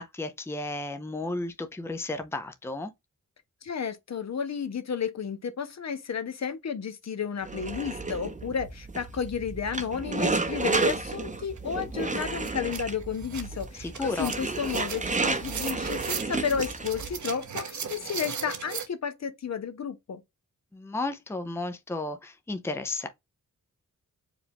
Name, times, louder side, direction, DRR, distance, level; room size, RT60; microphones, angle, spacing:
voice 1, 0.0-2.9 13.8-14.3 20.7-23.1, left 2 dB, 10° left, 0.6 m, -33 dB
voice 2, 3.6-20.2, left 7 dB, 55° left, 0.8 m, -32 dB
sound 1, 7.4-17.1, right 3 dB, 25° right, 0.8 m, -31 dB
sound 2, 11.6-11.7 12.0-18.9, right 6 dB, 65° right, 1.0 m, -38 dB
4.9 x 2.5 x 3.5 m
wide cardioid pair, 115°, 31 cm